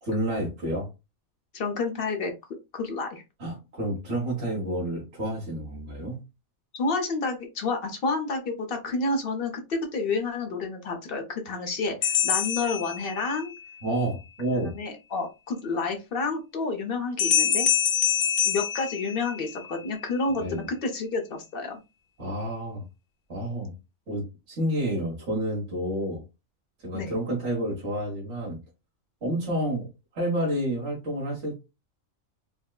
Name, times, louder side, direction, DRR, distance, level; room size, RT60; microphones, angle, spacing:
voice 1, 0.0-0.9 3.4-6.2 13.8-14.8 20.4-20.6 22.2-22.8 23.3-23.7 24.1-26.2 26.8-28.6 29.2-29.9 30.1-31.6, right 1 dB, 55° right, 1.6 m, -29 dB
voice 2, 1.5-2.3 2.7-3.2 6.7-13.5 14.5-17.7 18.4-21.8 26.9-27.1, left 3 dB, 50° left, 0.9 m, -29 dB
sound 1, 12.0-13.6 17.2-19.7, left 9 dB, 80° left, 1.1 m, -25 dB
4.3 x 2.1 x 2.3 m
omnidirectional pair, 1.4 m